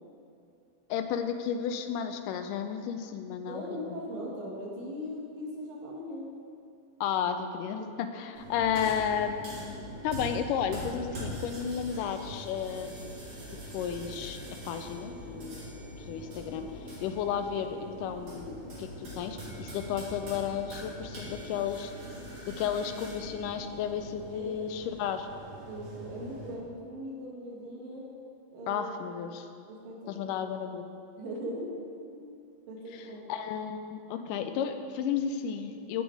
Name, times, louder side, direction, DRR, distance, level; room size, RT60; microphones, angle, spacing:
voice 1, 0.9-4.0 7.0-13.2 13.7-14.4 14.7-16.7 17.0-21.9 22.6-25.3 28.7-29.5 30.1-30.8 32.9-33.0 33.3-36.0, left 8 dB, 85° left, 8 dB, 2.1 m, -33 dB
voice 2, 3.5-6.3 7.8-7.9 24.3-24.7 25.7-28.1 28.5-28.9 29.7-30.4 31.2-31.7 32.1-32.3 32.7-33.3, equal, 90° right, -4 dB, 3.5 m, -40 dB
sound 1, 8.4-26.5, equal, 55° right, 4.1 m, -43 dB
15.5 x 5.4 x 4.7 m, 2.5 s
omnidirectional pair, 3.8 m